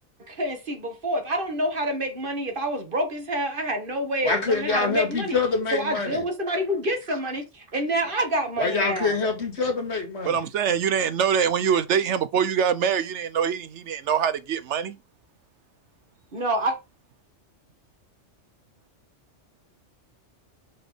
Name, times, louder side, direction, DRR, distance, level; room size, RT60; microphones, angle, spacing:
voice 1, 0.3-5.4 5.7-9.1 16.3-16.8, right 1 dB, 45° right, 1.7 m, -27 dB
voice 2, 4.2-6.2 8.6-10.4, left 4 dB, 65° left, 2.1 m, -25 dB
voice 3, 10.2-15.0, right 7 dB, 75° right, 1.0 m, -24 dB
5.5 x 4.3 x 4.9 m
omnidirectional pair, 1.2 m